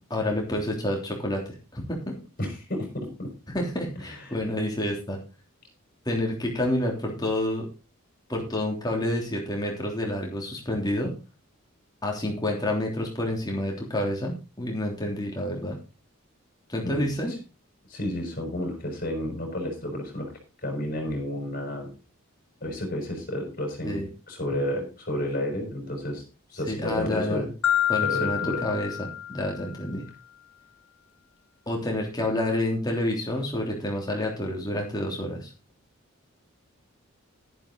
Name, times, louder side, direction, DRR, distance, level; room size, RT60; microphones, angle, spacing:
voice 1, 0.1-1.4 1.7-2.1 3.5-5.2 6.0-7.7 8.3-11.1 12.0-15.8 16.7-17.3 23.8-24.1 26.7-27.5 27.9-30.0 31.7-35.5, left 1 dB, 20° left, 0 dB, 3.3 m, -28 dB
voice 2, 2.4-3.3 4.1-4.4 16.8-17.1 17.9-20.3 20.6-21.9 22.6-26.2 26.5-27.5 28.0-28.6 29.9-30.0, left 1 dB, 40° left, 3 dB, 5.6 m, -31 dB
Marimba xylophone, 27.6-29.8, left 11 dB, 70° left, 1.4 m, -27 dB
12.0 x 10.5 x 4.0 m, 0.32 s
head